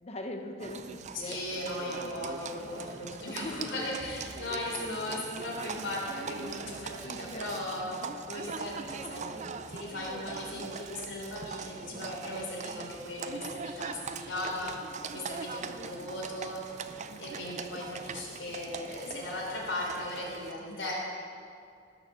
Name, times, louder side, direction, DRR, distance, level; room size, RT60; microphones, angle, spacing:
voice 1, 0.0-1.4 2.9-3.7 4.7-4.8 7.0-7.7 11.8-12.1 15.8-16.2 20.7-20.8, left 1 dB, 35° left, 4 dB, 0.9 m, -42 dB
Livestock farm animals working animals, 0.6-20.5, right 5 dB, 40° right, 0.5 m, -41 dB
voice 2, 1.2-21.1, left 1 dB, 80° left, -3 dB, 3.5 m, -38 dB
sound 1, 4.0-7.1, equal, 65° left, 2.4 m, -55 dB
18.0 x 6.6 x 6.6 m, 2.4 s
head